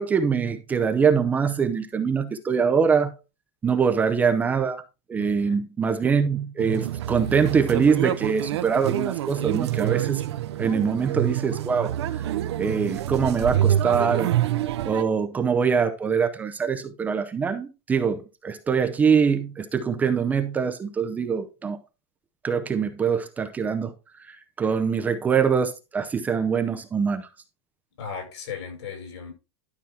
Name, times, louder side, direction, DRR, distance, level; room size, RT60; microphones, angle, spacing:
voice 1, 0.0-3.1 3.6-4.8 5.1-10.2 10.6-12.2 12.6-14.3 14.8-21.8 22.4-23.9 24.3-27.3, right 6 dB, 10° right, 0.6 m, -23 dB
voice 2, 5.1-5.6 28.0-29.3, left 6 dB, 80° left, 6.0 m, -36 dB
sound 1, 6.6-15.0, right 12 dB, 75° right, 0.9 m, -27 dB
12.0 x 5.9 x 3.4 m
supercardioid pair, 165°, 14 cm